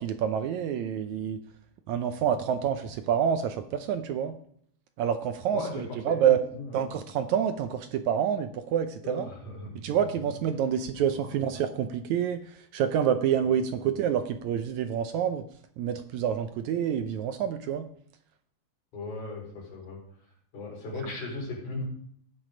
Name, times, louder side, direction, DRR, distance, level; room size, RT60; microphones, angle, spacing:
voice 1, 0.0-1.4 1.9-4.3 5.0-6.4 6.7-9.3 9.7-15.5 15.8-17.8, right 9 dB, 75° right, 8 dB, 1.9 m, -27 dB
voice 2, 5.5-7.0 9.0-10.0 11.0-11.5 13.9-14.0 18.9-20.0 20.5-21.8, left 3 dB, 70° left, -2 dB, 5.6 m, -38 dB
17.5 x 6.3 x 5.0 m, 0.65 s
omnidirectional pair, 3.7 m